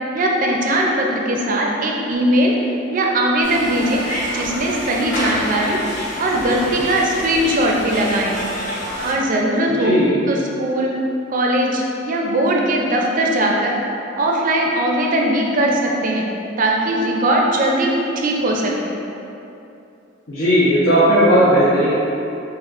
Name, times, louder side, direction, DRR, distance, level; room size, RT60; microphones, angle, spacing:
voice 1, 0.1-2.6 2.9-4.0 4.3-5.8 6.2-8.3 9.0-10.0 10.3-11.0 11.3-13.8 14.2-16.3 16.6-17.9 18.2-19.0, right 1 dB, 45° right, -1 dB, 0.4 m, -19 dB
sound 1, 3.4-9.1, equal, 35° left, 0.9 m, -28 dB
voice 2, 9.8-10.3 20.3-21.9, equal, 85° left, -12 dB, 0.8 m, -15 dB
5.7 x 2.4 x 2.4 m, 2.8 s
head